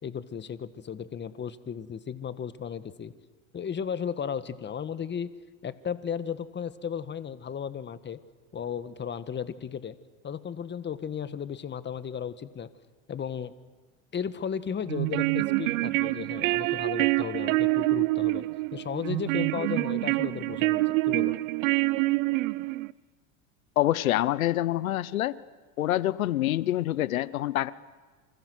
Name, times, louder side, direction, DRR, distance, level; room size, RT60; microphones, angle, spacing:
voice 1, 0.0-3.1 3.5-5.3 5.6-8.2 8.5-10.0 10.2-12.7 13.1-13.5 14.1-18.4 18.7-21.4, left 7 dB, 25° left, 13 dB, 1.5 m, -35 dB
sound 1, 14.9-22.9, right 21 dB, 75° right, 0.7 m, -26 dB
voice 2, 23.8-25.4 25.8-27.7, left 14 dB, 90° left, 19 dB, 1.0 m, -26 dB
29.5 x 25.5 x 6.4 m, 1.4 s
hypercardioid pair, 95°, 40 cm